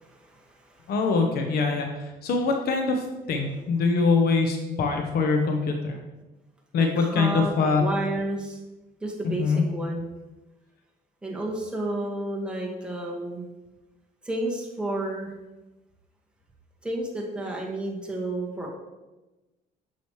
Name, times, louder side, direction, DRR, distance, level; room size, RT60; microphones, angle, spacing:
voice 1, 0.0-0.9 6.8-8.6 9.0-10.1 11.2-13.5 14.2-15.3 16.8-18.7, right 2 dB, 5° right, -2 dB, 1.7 m, -31 dB
voice 2, 0.9-1.9 2.2-3.0 3.3-6.0 6.7-7.8 9.4-9.6, left 4 dB, 65° left, 3 dB, 1.0 m, -23 dB
8.5 x 6.2 x 3.2 m, 1.1 s
cardioid pair, 110°, 17 cm